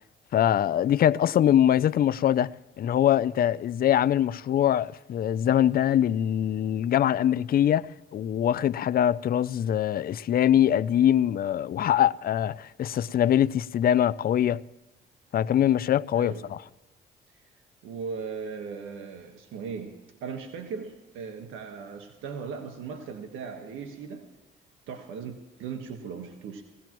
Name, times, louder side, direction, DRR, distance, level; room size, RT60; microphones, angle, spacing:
voice 1, 0.3-2.5 2.8-14.6 15.3-16.6, left 10 dB, 50° left, 0.5 m, -23 dB
voice 2, 16.1-16.5 17.8-24.3 24.9-26.6, right 5 dB, 85° right, 1.4 m, -38 dB
20.0 x 17.0 x 3.0 m
cardioid pair, 90°, 20 cm